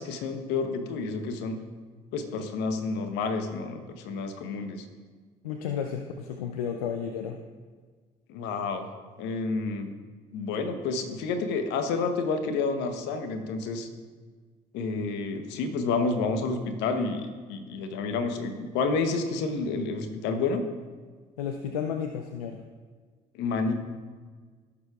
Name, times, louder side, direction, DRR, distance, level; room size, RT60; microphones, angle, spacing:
voice 1, 0.0-1.6 2.1-4.8 8.3-8.9 9.2-9.9 10.3-13.9 14.7-20.6 23.3-23.7, left 4 dB, 70° left, 7 dB, 1.0 m, -29 dB
voice 2, 5.4-7.4 21.4-22.7, left 7 dB, 85° left, 5 dB, 0.5 m, -32 dB
15.5 x 6.8 x 2.4 m, 1.5 s
hypercardioid pair, 50°, 19 cm